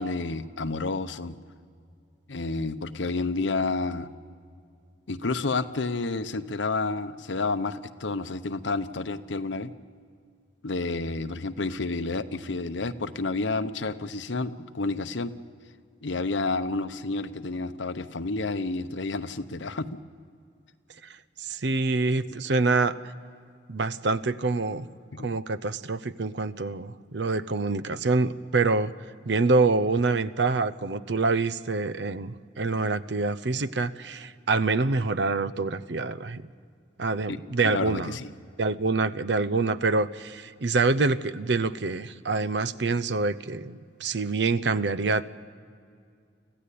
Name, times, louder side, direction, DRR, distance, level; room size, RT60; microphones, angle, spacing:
voice 1, 0.0-1.4 2.3-4.1 5.1-9.7 10.6-15.3 16.0-20.0 25.1-25.3 37.3-37.4 37.6-38.3, left 3 dB, 75° left, 10 dB, 0.9 m, -30 dB
voice 2, 21.4-23.0 23.7-24.9 25.2-28.9 29.3-36.4 37.0-38.2 38.6-45.3, right 3 dB, 65° right, 15 dB, 0.7 m, -26 dB
25.5 x 15.5 x 8.5 m, 2.3 s
head